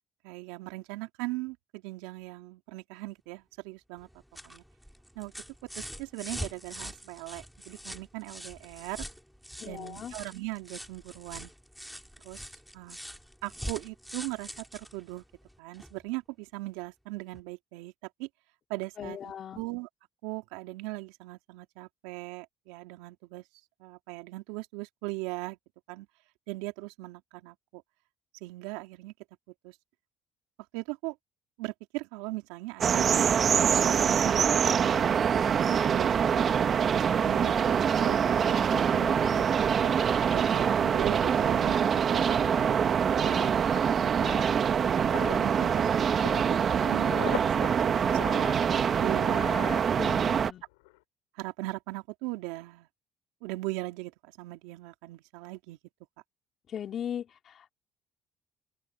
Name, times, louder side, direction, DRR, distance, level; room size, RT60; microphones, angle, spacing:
voice 1, 0.2-4.1 4.4-4.6 5.1-5.3 5.6-9.0 9.6-11.5 12.2-12.4 12.7-13.0 13.4-15.2 15.6-17.9 18.2-18.3 18.7-19.9 20.2-23.4 23.8-25.6 25.9-26.1 26.5-27.8 28.4-29.1 29.6-29.8 30.7-31.1 31.6-33.3 33.6-36.4 37.1-38.6 39.8-43.6 45.2-45.9 46.7-49.7 51.3-52.9 53.4-55.8, right 22 dB, 85° right, 3.1 m, -39 dB
sound 1, 4.0-16.0 17.3-17.4, equal, ahead, 4.8 m, -44 dB
voice 2, 9.6-10.1 19.0-19.6 38.7-39.5 49.9-50.6 56.7-57.7, left 9 dB, 55° left, 3.2 m, -39 dB
sound 2, 32.8-50.5, right 7 dB, 50° right, 1.5 m, -25 dB
sound 3, 41.4-50.5 50.7-51.0, left 25 dB, 90° left, 4.4 m, -42 dB
open air
hypercardioid pair, 65°, 0 cm